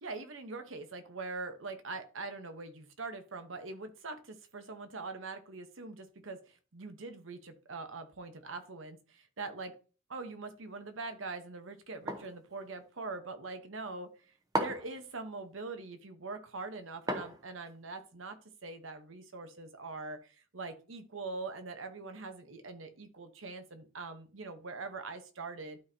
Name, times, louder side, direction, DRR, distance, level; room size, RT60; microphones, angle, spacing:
voice 1, 0.0-9.7 10.1-14.1 14.6-25.8, right 3 dB, 85° right, 8 dB, 1.1 m, -43 dB
sound 1, 12.1-12.4 14.5-15.0 17.1-17.7, right 1 dB, 20° right, 0.8 m, -34 dB
12.0 x 4.3 x 2.8 m, 0.36 s
head